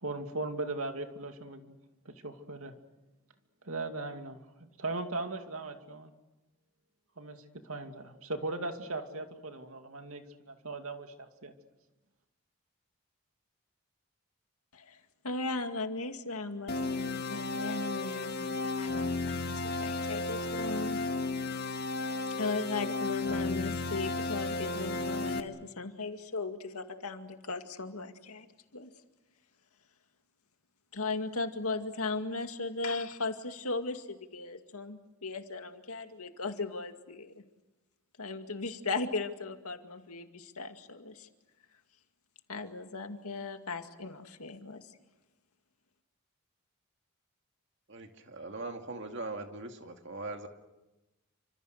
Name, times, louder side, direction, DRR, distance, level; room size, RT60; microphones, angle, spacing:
voice 1, 0.0-1.8 2.1-2.7 3.6-6.1 7.2-7.4 7.6-11.1 11.4-11.5, right 2 dB, 75° right, 5 dB, 2.5 m, -38 dB
voice 2, 14.7-21.0 22.4-28.5 28.7-28.9 30.9-37.4 38.2-41.3 42.5-44.9, left 3 dB, 85° left, 6 dB, 2.3 m, -37 dB
sound 1, 16.7-25.4, left 3 dB, 45° left, 1.7 m, -33 dB
voice 3, 47.9-50.5, right 2 dB, 55° right, 5 dB, 2.4 m, -40 dB
29.0 x 26.0 x 6.6 m, 1.0 s
head